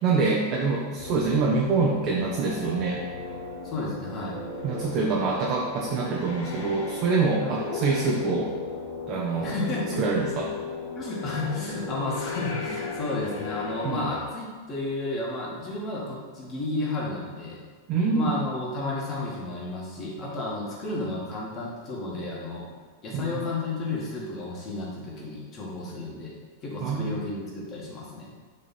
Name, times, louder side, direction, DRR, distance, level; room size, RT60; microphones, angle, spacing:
voice 1, 0.0-3.0 4.6-8.5 9.1-9.5 10.0-10.5 13.8-14.0 17.9-18.4 23.1-23.4 26.8-27.2, right 4 dB, 40° right, -2 dB, 0.8 m, -25 dB
sound 1, 1.0-14.2, left 4 dB, 55° left, 0.9 m, -36 dB
voice 2, 3.6-4.4 7.4-7.6 9.4-10.0 10.9-17.6 18.1-22.7 23.0-26.3 26.6-28.3, left 2 dB, 30° left, -4 dB, 1.9 m, -32 dB
5.3 x 3.9 x 5.7 m, 1.5 s
figure-of-eight pair, 90°, 0 cm